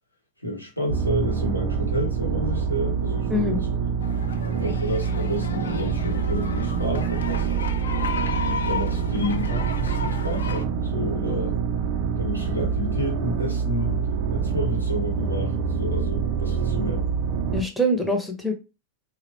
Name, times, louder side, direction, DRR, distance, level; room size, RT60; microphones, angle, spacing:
voice 1, 0.4-3.7 4.6-7.5 8.4-11.6 12.2-17.1, left 1 dB, 85° left, 0.8 m, -30 dB
sound 1, 0.9-17.6, right 6 dB, 45° right, 0.3 m, -26 dB
voice 2, 3.3-3.6 17.5-18.5, equal, ahead, 0.6 m, -24 dB
sound 2, 4.0-10.6, left 6 dB, 70° left, 0.3 m, -34 dB
2.8 x 2.0 x 2.6 m
figure-of-eight pair, 90°, 0 cm